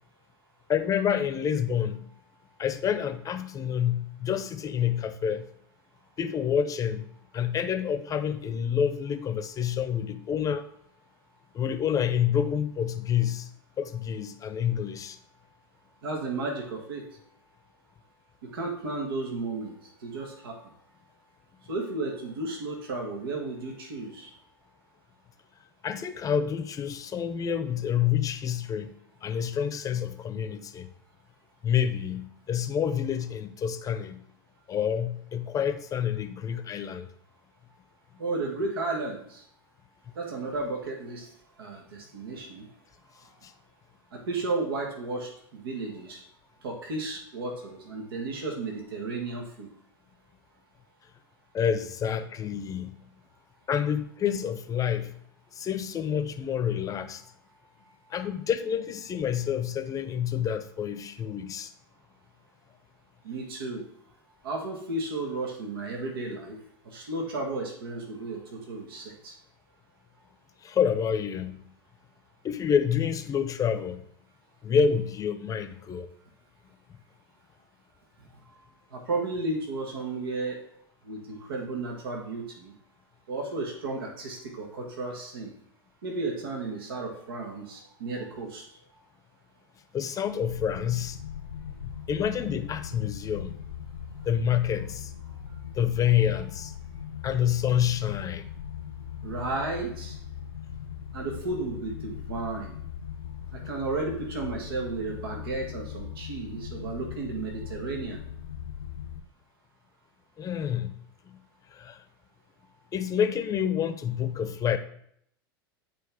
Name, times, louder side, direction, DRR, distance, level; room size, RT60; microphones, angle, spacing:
voice 1, 0.7-2.0 2.6-5.5 6.2-7.0 7.3-10.7 11.5-13.5 13.8-15.2 25.8-28.9 29.2-30.9 31.6-34.2 34.7-37.1 43.4-43.5 51.5-52.9 53.7-55.1 55.5-57.2 58.1-61.7 70.6-71.6 72.4-74.0 74.6-76.1 89.9-91.2 92.1-93.6 94.2-95.1 95.7-96.7 97.2-98.5 110.4-110.9 111.3-111.4 111.7-112.0 112.9-114.8, left 8 dB, 30° left, 10 dB, 0.7 m, -28 dB
voice 2, 16.0-17.1 18.5-19.7 20.0-20.6 21.7-24.3 38.2-39.4 40.1-41.3 41.6-42.6 44.1-46.2 46.6-49.7 63.2-63.8 64.4-66.6 66.9-69.3 78.9-80.6 81.0-82.7 83.3-85.5 86.0-88.6 99.2-100.2 101.1-102.8 103.5-108.2, right 3 dB, 75° right, 1 dB, 1.6 m, -33 dB
sound 1, 90.4-109.2, left 8 dB, 85° left, 0.7 m, -39 dB
8.5 x 4.4 x 3.5 m, 0.68 s
hypercardioid pair, 95°, 12 cm